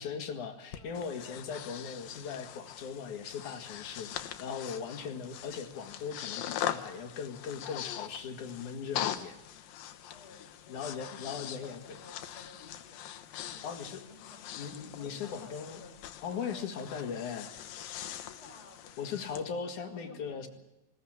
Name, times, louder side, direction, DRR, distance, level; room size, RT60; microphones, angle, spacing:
voice 1, 0.0-9.8 10.7-11.8 13.6-14.0 14.6-15.8 16.2-17.5 19.0-20.5, left 6 dB, 60° left, 6 dB, 3.4 m, -39 dB
Breathing, 0.7-19.4, left 11 dB, 80° left, 2.9 m, -42 dB
voice 2, 0.7-1.8 3.9-4.3 10.0-16.0 16.5-17.0 18.0-19.3 19.7-20.5, left 3 dB, 40° left, 2 dB, 5.1 m, -55 dB
20.0 x 18.5 x 8.8 m, 0.94 s
omnidirectional pair, 4.0 m